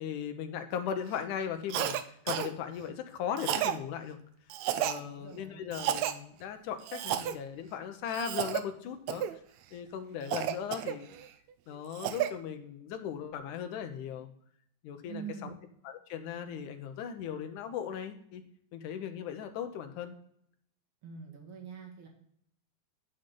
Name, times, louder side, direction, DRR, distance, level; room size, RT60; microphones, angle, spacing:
voice 1, 0.0-4.2 4.8-9.4 9.7-11.1 11.7-14.3 14.8-15.5 15.8-18.4 18.7-20.1, left 8 dB, 85° left, 7 dB, 2.4 m, -38 dB
Cough, 1.7-2.0 2.3-2.5 3.4-3.8 4.5-5.0 5.7-6.1 6.9-7.4 8.1-8.6 9.1-9.3 10.3-11.3 11.7-12.3, right 11 dB, 75° right, 1.8 m, -32 dB
voice 2, 5.0-5.6 15.1-15.5 21.0-22.1, right 7 dB, 45° right, 1 dB, 2.8 m, -44 dB
11.0 x 6.4 x 3.8 m, 0.67 s
omnidirectional pair, 3.5 m